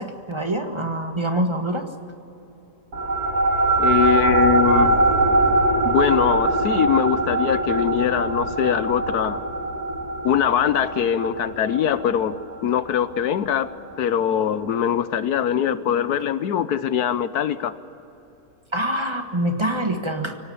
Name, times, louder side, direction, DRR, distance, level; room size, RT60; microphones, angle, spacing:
voice 1, 0.0-1.9 18.7-20.4, right 1 dB, 20° right, 5 dB, 1.6 m, -25 dB
sound 1, 2.9-13.7, right 2 dB, 80° right, 2.4 m, -22 dB
voice 2, 3.8-5.0 5.8-9.4 10.2-13.7 14.0-17.7, left 9 dB, 85° left, 14 dB, 1.4 m, -22 dB
24.5 x 18.0 x 10.0 m, 2.9 s
omnidirectional pair, 1.6 m